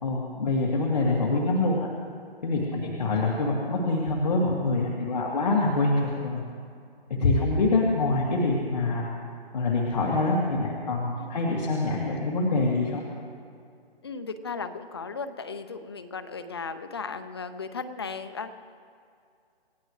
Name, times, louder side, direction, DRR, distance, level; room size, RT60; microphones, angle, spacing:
voice 1, 0.0-1.9 2.4-6.4 7.2-9.1 9.5-13.0, left 2 dB, 45° left, -3 dB, 2.4 m, -25 dB
voice 2, 14.0-18.5, left 5 dB, 25° left, 10 dB, 0.7 m, -36 dB
29.0 x 15.0 x 3.2 m, 2.4 s
hypercardioid pair, 170°, 31 cm